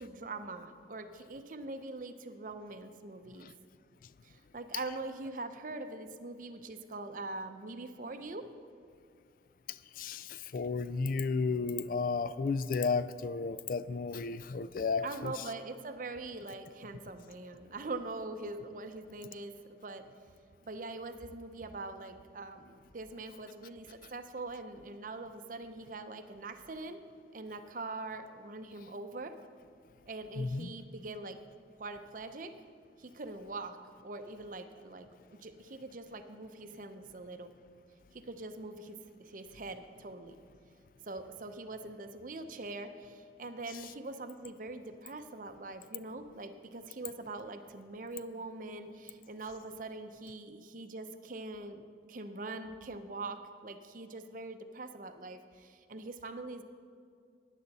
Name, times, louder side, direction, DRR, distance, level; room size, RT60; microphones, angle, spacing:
voice 1, 0.0-3.5 4.2-8.4 15.0-20.0 20.6-27.0 27.3-29.3 30.0-31.4 31.8-32.5 33.0-33.8 34.0-37.5 38.1-40.4 41.1-56.6, right 2 dB, 45° right, 8 dB, 0.6 m, -43 dB
voice 2, 9.7-15.3 30.4-30.7, left 4 dB, 50° left, 15 dB, 0.3 m, -33 dB
14.5 x 10.0 x 4.1 m, 2.2 s
head